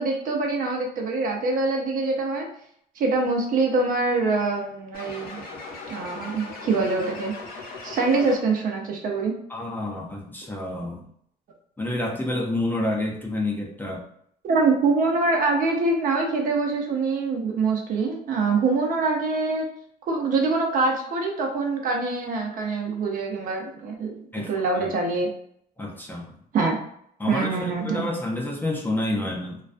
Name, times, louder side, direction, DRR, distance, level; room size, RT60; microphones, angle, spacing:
voice 1, 0.0-2.5 3.0-5.4 5.9-7.3 7.8-9.3 14.4-19.7 20.1-25.3 26.5-26.8 27.3-28.0, right 3 dB, 55° right, 1 dB, 0.6 m, -24 dB
sound 1, 4.9-8.7, left 3 dB, 60° left, 0.8 m, -39 dB
voice 2, 9.5-11.0 11.8-14.0 24.3-24.9 25.8-26.3 27.2-29.6, left 1 dB, 10° left, -1 dB, 0.4 m, -29 dB
2.3 x 2.2 x 2.4 m, 0.68 s
cardioid pair, 110°, 17 cm